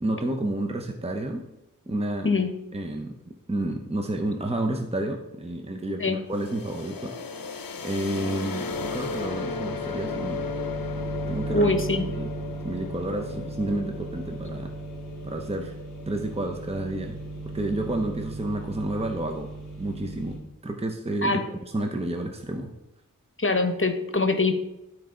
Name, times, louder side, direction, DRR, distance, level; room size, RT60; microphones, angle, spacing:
voice 1, 0.0-1.4 1.9-2.3 2.7-7.6 7.8-10.5 11.3-11.7 12.1-12.3 12.6-14.7 15.2-15.7 16.1-17.2 17.5-19.5 19.8-20.4 20.6-22.7, right 1 dB, 20° right, 3 dB, 0.8 m, -30 dB
sound 1, 6.3-18.0, left 5 dB, 85° left, 0.6 m, -36 dB
sound 2, 8.7-20.4, right 2 dB, ahead, 3.2 m, -37 dB
voice 2, 11.5-12.1 21.2-21.4 23.4-24.5, left 3 dB, 35° left, 7 dB, 1.0 m, -23 dB
12.0 x 4.6 x 3.8 m, 0.93 s
wide cardioid pair, 55°, 34 cm